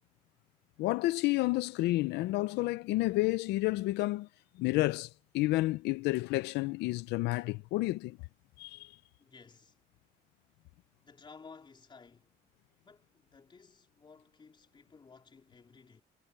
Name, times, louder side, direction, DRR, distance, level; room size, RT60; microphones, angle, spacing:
voice 1, 0.8-4.3 4.6-5.1 5.3-8.2 8.6-8.9, left 19 dB, 85° left, 0.6 m, -30 dB
voice 2, 9.2-9.7 11.0-12.3 12.8-16.0, left 5 dB, 30° left, 3.7 m, -56 dB
cardioid pair, 110°, 17 cm